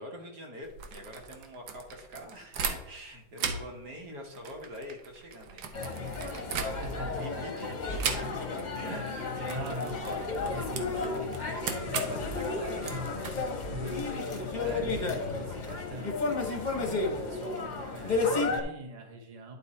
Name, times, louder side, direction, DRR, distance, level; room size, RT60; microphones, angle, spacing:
voice 1, 0.0-5.9 6.6-8.2 8.7-9.0 9.3-9.6 13.8-14.5, equal, 70° right, 1 dB, 1.8 m, -45 dB
sound 1, 0.6-3.1 3.3-7.2 8.0-8.7 8.9-9.1 9.4-14.0, right 6 dB, 85° right, 1.4 m, -38 dB
sound 2, 5.7-18.6, left 3 dB, 35° left, 0.9 m, -33 dB
voice 2, 6.8-7.5 8.8-19.6, right 2 dB, 25° right, 2 dB, 0.9 m, -43 dB
sound 3, 9.8-16.9, left 9 dB, 75° left, 1.0 m, -46 dB
10.5 x 4.0 x 4.2 m, 0.93 s
omnidirectional pair, 1.8 m